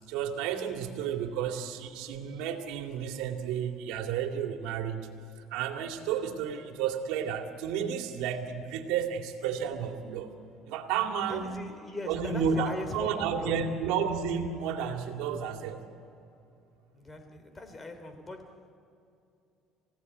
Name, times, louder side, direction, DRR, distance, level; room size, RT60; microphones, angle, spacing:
voice 1, 0.1-5.1 5.5-10.3 10.7-11.6 12.1-15.8, right 7 dB, 85° right, 4 dB, 2.3 m, -32 dB
voice 2, 11.3-13.7 16.9-18.8, left 2 dB, 20° left, 8 dB, 3.0 m, -40 dB
28.5 x 17.0 x 9.6 m, 2.7 s
cardioid pair, 125°, 0 cm